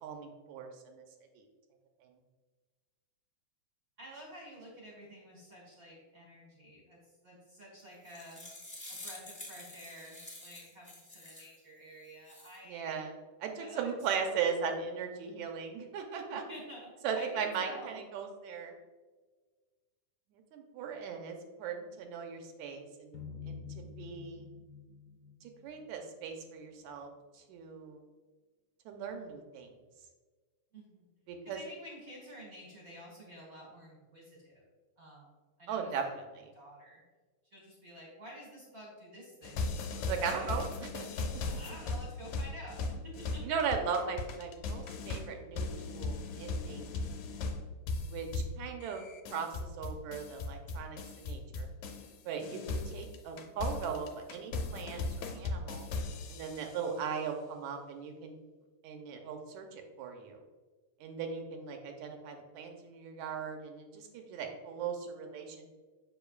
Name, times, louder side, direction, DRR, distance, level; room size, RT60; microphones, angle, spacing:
voice 1, 0.0-1.0 2.0-2.1 12.7-16.4 17.0-18.8 20.5-23.2 23.5-24.5 25.4-27.1 27.3-28.0 28.9-29.7 31.3-31.6 35.7-36.3 40.0-41.1 43.4-46.8 48.0-51.7 52.3-55.9 56.3-58.3 58.8-60.4 61.0-65.7, right 6 dB, 85° right, 4 dB, 2.1 m, -38 dB
voice 2, 4.0-8.4 8.9-13.0 13.6-14.4 16.3-18.0 30.7-31.1 31.4-34.6 35.0-35.3 35.6-36.1 36.5-37.0 37.5-40.6 41.4-43.6, equal, 45° right, -3 dB, 1.2 m, -50 dB
sound 1, 7.8-11.6 12.0-12.6, left 1 dB, 20° left, 1.3 m, -48 dB
sound 2, 23.1-26.3, left 5 dB, 55° left, 1.5 m, -47 dB
sound 3, 39.4-52.1 52.4-56.8, left 3 dB, 80° left, 1.9 m, -38 dB
7.0 x 5.8 x 2.3 m, 1.4 s
omnidirectional pair, 3.3 m